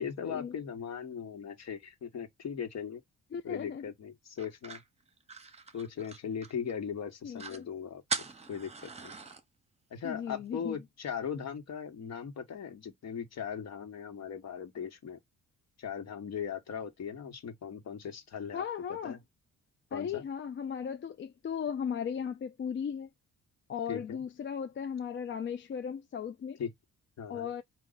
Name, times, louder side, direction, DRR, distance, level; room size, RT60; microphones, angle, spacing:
voice 1, 0.0-3.0 3.4-4.8 5.7-8.0 8.5-9.1 9.9-15.2 15.8-18.6 18.9-19.2 19.9-20.2 23.9-24.2 26.6-26.7 27.2-27.5, left 7 dB, 60° left, 1.4 m, -39 dB
voice 2, 3.3-3.8 7.2-7.7 10.0-10.8 18.5-19.2 19.9-23.1 23.7-26.6 27.3-27.6, left 7 dB, 40° left, 0.5 m, -36 dB
sound 1, 4.4-6.8 7.1-7.2 7.4-7.6 8.1-9.4, right 4 dB, 20° right, 1.0 m, -40 dB
4.6 x 2.5 x 3.9 m
cardioid pair, 90°, 30 cm